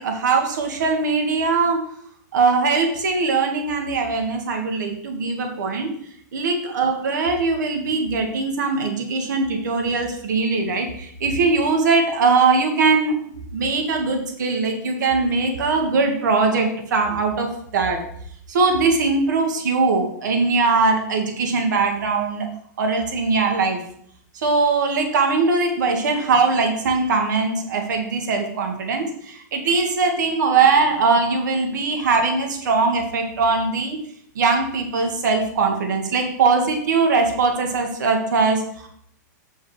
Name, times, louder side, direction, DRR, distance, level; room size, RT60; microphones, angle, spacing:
voice 1, 0.0-1.8 2.3-5.9 6.3-18.0 18.5-22.5 22.8-23.8 24.3-34.0 34.4-38.9, right 4 dB, 75° right, 3 dB, 2.0 m, -21 dB
8.3 x 5.5 x 5.0 m, 0.67 s
supercardioid pair, 175°, 10 cm